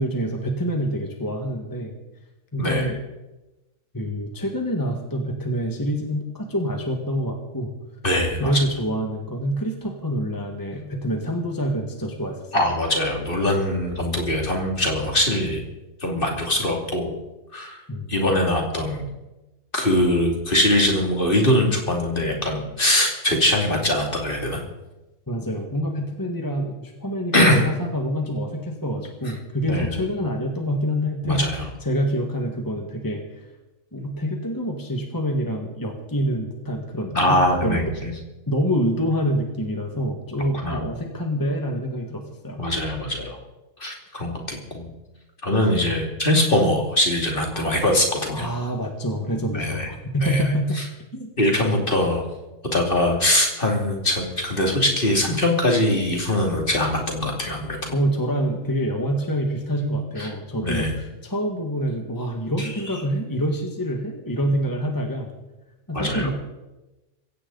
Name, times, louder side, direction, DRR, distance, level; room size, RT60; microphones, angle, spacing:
voice 1, 0.0-2.0 2.5-3.0 3.9-7.7 8.4-12.6 17.9-18.1 25.3-31.4 31.8-33.5 33.9-37.4 37.6-37.9 38.5-42.6 47.5-47.8 48.3-50.8 51.1-51.5 57.9-65.3 65.9-66.3, equal, 15° left, 2 dB, 1.7 m, -26 dB
voice 2, 2.6-2.9 8.0-8.6 12.5-15.6 16.0-17.1 17.5-17.8 18.1-19.1 19.7-24.6 27.3-27.7 29.7-30.0 31.2-31.6 37.1-38.1 40.6-40.8 42.6-43.4 43.8-44.9 45.4-48.5 49.5-49.9 50.2-50.4 50.7-50.8 51.4-52.2 52.7-57.9 60.2-60.3 60.6-61.0 62.6-62.7 65.9-66.3, left 1 dB, 40° left, 1 dB, 2.9 m, -22 dB
21.0 x 16.5 x 4.1 m, 1.1 s
omnidirectional pair, 1.5 m